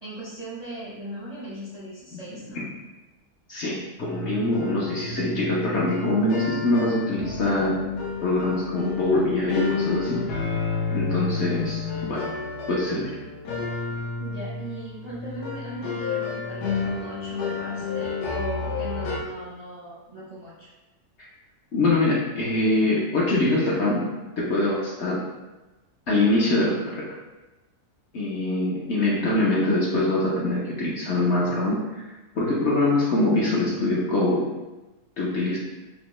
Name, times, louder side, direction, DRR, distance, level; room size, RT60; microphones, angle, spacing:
voice 1, 0.0-2.7 14.2-20.7, right 1 dB, 45° right, -8 dB, 0.5 m, -38 dB
voice 2, 3.5-7.8 8.2-10.2 10.9-12.2 12.7-13.1 21.7-24.1 24.4-25.2 26.1-27.0 28.1-32.0 32.4-34.4 35.2-35.6, left 2 dB, 60° left, -5 dB, 0.8 m, -23 dB
sound 1, 4.0-19.2, left 4 dB, 90° left, 1.2 m, -31 dB
5.0 x 2.0 x 3.0 m, 1.1 s
omnidirectional pair, 1.6 m